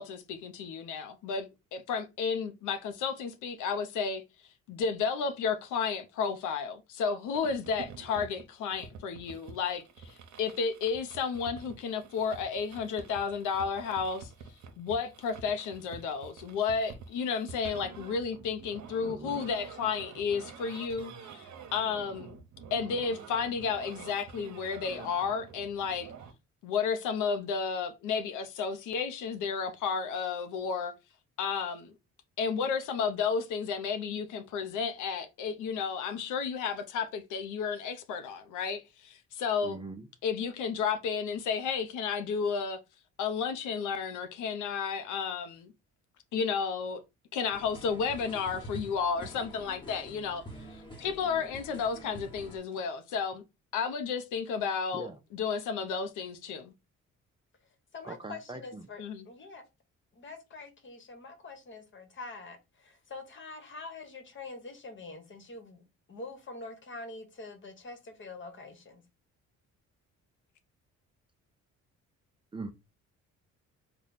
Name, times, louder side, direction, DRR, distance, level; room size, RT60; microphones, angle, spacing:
voice 1, 0.0-1.5 1.7-4.2 4.7-14.3 14.8-22.4 22.7-26.1 26.6-30.9 31.4-31.9 32.4-39.8 40.2-42.8 43.2-45.7 46.3-47.0 47.3-50.4 51.0-53.4 53.7-56.7 59.0-59.3, left 6 dB, 90° left, 0.6 m, -32 dB
sound 1, 7.3-26.3, right 6 dB, 70° right, 0.8 m, -48 dB
voice 2, 19.0-19.4 39.6-40.1 51.1-51.5 54.9-55.2 58.0-58.9 72.5-72.7, right 3 dB, 15° right, 0.5 m, -42 dB
sound 2, 47.5-52.6, right 1 dB, 15° left, 1.1 m, -47 dB
voice 3, 57.9-59.6 60.1-69.0, left 3 dB, 40° left, 1.1 m, -45 dB
3.4 x 2.2 x 4.0 m
cardioid pair, 90°, 30 cm